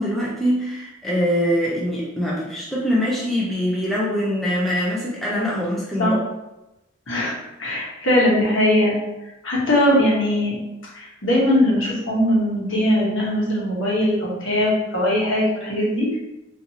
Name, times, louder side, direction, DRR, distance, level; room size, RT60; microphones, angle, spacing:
voice 1, 0.0-6.2, equal, ahead, -6 dB, 0.4 m, -23 dB
voice 2, 7.6-8.9 9.4-10.5 10.9-16.1, left 1 dB, 75° left, -5 dB, 1.0 m, -20 dB
2.7 x 2.5 x 2.7 m, 0.96 s
head